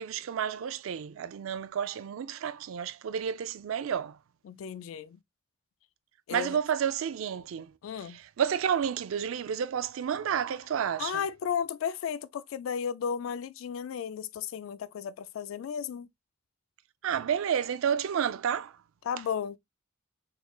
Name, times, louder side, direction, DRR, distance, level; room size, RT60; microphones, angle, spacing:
voice 1, 0.0-4.2 6.3-7.7 8.4-11.2 17.0-18.7, right 8 dB, 70° right, 0.4 m, -30 dB
voice 2, 4.4-5.2 6.3-6.6 7.8-8.2 11.0-16.1 19.0-19.6, left 7 dB, 70° left, 0.3 m, -34 dB
3.6 x 3.1 x 2.2 m
head